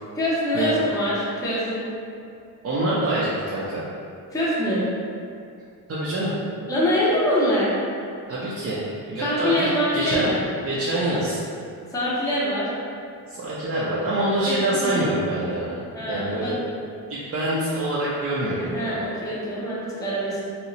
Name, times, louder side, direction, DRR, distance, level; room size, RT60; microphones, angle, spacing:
voice 1, 0.2-1.9 4.3-4.8 6.7-7.7 9.2-10.4 11.9-12.7 14.4-15.0 15.9-16.6 18.6-20.5, equal, 10° left, -8 dB, 0.6 m, -24 dB
voice 2, 2.6-3.8 5.9-6.3 8.3-8.8 9.1-9.7 9.9-10.3 10.6-11.4 13.3-15.7 16.1-16.5 17.1-19.0, right 1 dB, 40° right, -8 dB, 0.4 m, -25 dB
2.8 x 2.1 x 3.9 m, 2.4 s
wide cardioid pair, 140°, 41 cm